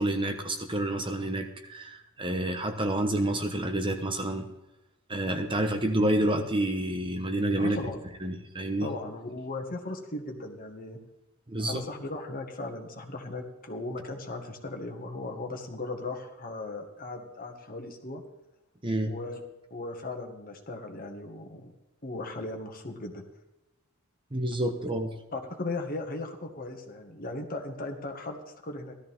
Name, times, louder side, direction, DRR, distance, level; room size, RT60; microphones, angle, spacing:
voice 1, 0.0-4.5 5.1-7.8 8.2-8.9 11.5-11.8 18.8-19.1 24.3-25.1, right 1 dB, 25° right, 6 dB, 1.1 m, -28 dB
voice 2, 7.6-8.0 8.8-11.0 11.6-18.2 19.0-19.4 19.7-21.7 22.0-23.2 25.3-28.9, left 2 dB, 40° left, 3 dB, 1.9 m, -37 dB
16.5 x 13.0 x 3.7 m, 0.98 s
head